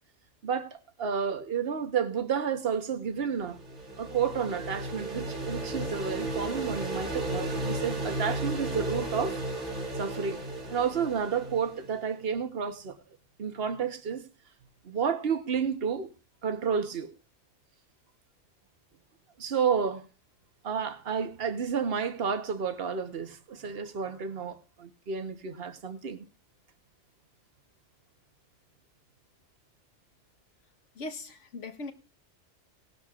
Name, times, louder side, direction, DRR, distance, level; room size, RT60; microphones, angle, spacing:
voice 1, 0.4-3.6 4.0-9.4 10.0-10.4 10.7-13.0 13.4-14.2 14.8-16.1 16.4-17.1 19.4-20.1 20.6-26.2, right 6 dB, 55° right, 1.3 m, -31 dB
sound 1, 3.2-12.0, right 2 dB, 75° right, 2.6 m, -34 dB
voice 2, 30.9-31.9, left 2 dB, 80° left, 1.6 m, -39 dB
18.5 x 11.5 x 2.5 m
omnidirectional pair, 1.2 m